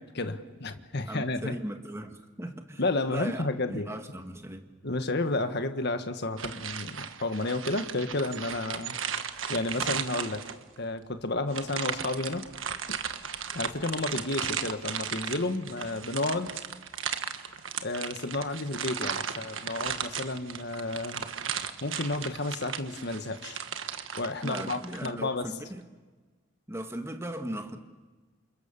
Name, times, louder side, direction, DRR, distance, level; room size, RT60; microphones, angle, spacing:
voice 1, 0.0-1.6 2.8-3.9 4.8-8.9 9.5-10.4 10.8-12.4 12.9-13.0 13.5-16.5 17.8-21.2 21.8-23.6 24.2-25.5, left 2 dB, 55° left, 8 dB, 1.6 m, -31 dB
voice 2, 1.1-2.8 3.1-4.7 24.4-25.8 26.7-27.8, right 1 dB, 15° right, 5 dB, 1.7 m, -38 dB
sound 1, 6.4-10.8 11.5-25.1, right 7 dB, 70° right, 1.5 m, -36 dB
29.0 x 28.0 x 7.0 m, 1.3 s
head